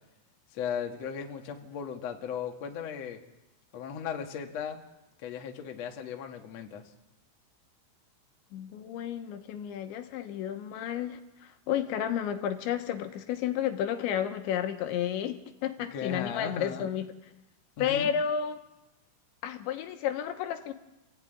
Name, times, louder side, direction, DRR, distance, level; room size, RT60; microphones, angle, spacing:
voice 1, 0.5-3.2 3.7-4.8 5.2-6.8 15.9-16.9 17.8-18.1, left 7 dB, 55° left, 3 dB, 1.9 m, -36 dB
voice 2, 8.5-17.1 17.8-18.6 19.4-20.7, left 9 dB, 75° left, 7 dB, 3.2 m, -32 dB
27.0 x 15.5 x 9.2 m, 0.98 s
omnidirectional pair, 5.7 m